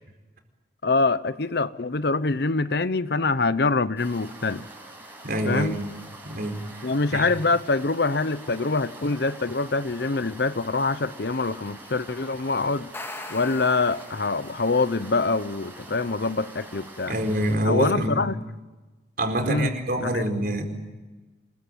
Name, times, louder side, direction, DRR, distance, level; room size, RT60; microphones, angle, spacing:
voice 1, 0.8-4.6 5.4-5.8 6.8-12.9 13.3-17.1 17.6-18.4 19.4-19.7 20.0-20.2, left 3 dB, 60° left, 0.9 m, -25 dB
sound 1, 4.0-17.6, right 1 dB, 10° right, 6.6 m, -45 dB
voice 2, 5.2-5.8 6.3-7.2 17.1-18.2 19.2-20.6, right 1 dB, 55° right, 4.7 m, -26 dB
sound 2, 12.7-14.7, left 2 dB, 15° left, 2.1 m, -40 dB
27.5 x 21.5 x 9.1 m
head